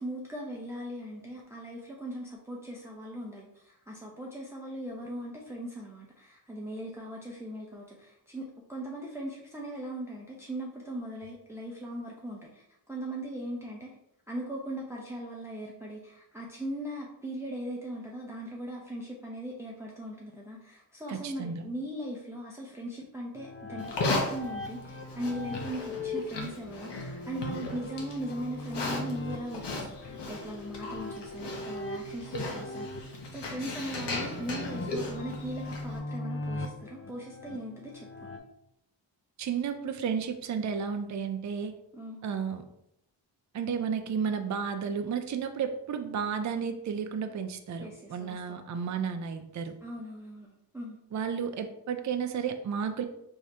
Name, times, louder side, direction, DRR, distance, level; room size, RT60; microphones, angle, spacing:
voice 1, 0.0-13.9 14.3-38.1 41.9-42.2 47.8-48.6 49.8-51.0, right 1 dB, 5° right, -3 dB, 0.7 m, -39 dB
voice 2, 21.1-21.7 39.4-41.7 42.2-42.6 43.5-49.7 51.1-53.0, right 6 dB, 40° right, 6 dB, 0.5 m, -32 dB
sound 1, 23.4-38.4, left 2 dB, 30° left, 0.6 m, -40 dB
Livestock farm animals working animals, 23.8-36.0, left 2 dB, 65° left, 1.1 m, -37 dB
4.6 x 3.2 x 2.8 m, 0.79 s
cardioid pair, 75°, 44 cm